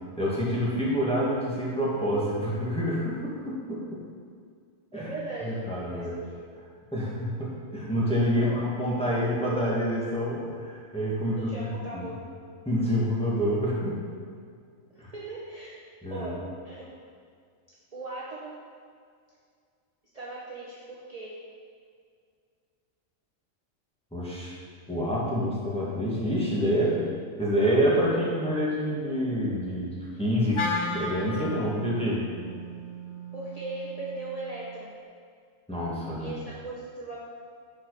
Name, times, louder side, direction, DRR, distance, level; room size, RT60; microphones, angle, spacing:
voice 1, 0.2-4.0 4.9-5.1 5.4-6.1 6.9-12.1 12.7-14.0 15.0-15.1 16.0-16.3 24.1-24.5 24.9-27.1 27.4-29.9 30.2-30.6 30.9-32.2 35.7-36.3, equal, 5° left, -7 dB, 2.0 m, -27 dB
voice 2, 4.9-5.6 5.9-6.4 8.4-8.6 11.3-12.3 14.9-15.7 16.1-16.9 17.9-18.6 20.1-21.4 33.3-34.9 36.2-37.2, right 2 dB, 30° right, -7 dB, 1.1 m, -39 dB
Wind instrument woodwind instrument, 30.5-34.8, left 1 dB, 25° left, 0.8 m, -35 dB
11.0 x 4.8 x 5.0 m, 2.2 s
omnidirectional pair, 1.4 m